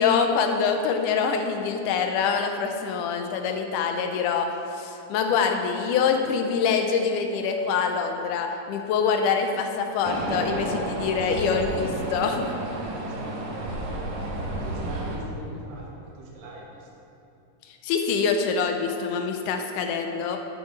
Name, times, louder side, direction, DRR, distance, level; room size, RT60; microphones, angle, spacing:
voice 1, 0.0-12.5 17.7-20.4, left 6 dB, 75° left, 5 dB, 2.1 m, -25 dB
sound 1, 10.0-15.2, right 1 dB, 65° right, 2.2 m, -31 dB
voice 2, 12.8-13.8 14.5-17.1, right 1 dB, 85° right, -3 dB, 3.3 m, -42 dB
11.5 x 8.5 x 3.2 m, 2.7 s
omnidirectional pair, 3.9 m